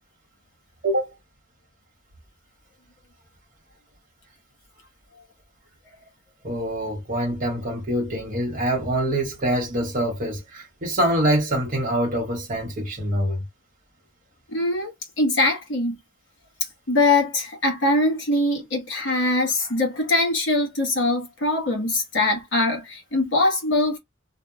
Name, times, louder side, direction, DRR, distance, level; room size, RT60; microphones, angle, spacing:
voice 1, 0.8-1.1 6.4-13.4, right 1 dB, 45° right, 0.8 m, -25 dB
voice 2, 14.5-16.0 16.9-24.0, left 2 dB, 65° left, 1.2 m, -22 dB
2.7 x 2.0 x 2.3 m
head